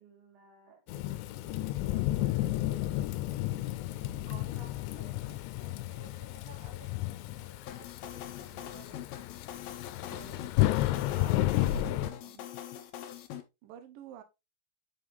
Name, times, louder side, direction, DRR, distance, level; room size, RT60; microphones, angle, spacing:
voice 1, 0.0-3.1 3.9-9.0 11.5-12.5, right 4 dB, 60° right, 3.3 m, -57 dB
Thunderstorm / Rain, 0.9-12.1, left 15 dB, 90° left, 2.8 m, -32 dB
sound 1, 7.7-13.4, left 11 dB, 70° left, 2.4 m, -43 dB
voice 2, 10.1-10.5 11.0-12.4 13.6-14.2, right 10 dB, 80° right, 2.0 m, -50 dB
6.9 x 5.7 x 3.3 m
omnidirectional pair, 5.0 m